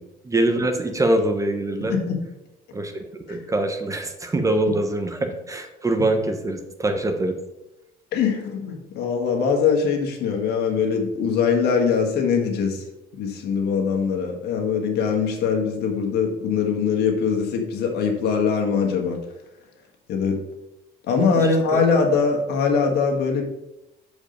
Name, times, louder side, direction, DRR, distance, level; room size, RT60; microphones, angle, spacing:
voice 1, 0.2-2.0 2.7-7.3 21.4-21.8, right 1 dB, 20° right, 7 dB, 0.9 m, -24 dB
voice 2, 1.8-2.2 3.3-3.4 8.1-12.8 13.1-19.2 20.1-20.4 21.1-23.4, left 5 dB, 75° left, 2 dB, 1.6 m, -22 dB
6.6 x 5.1 x 5.1 m, 0.93 s
cardioid pair, 110°, 17 cm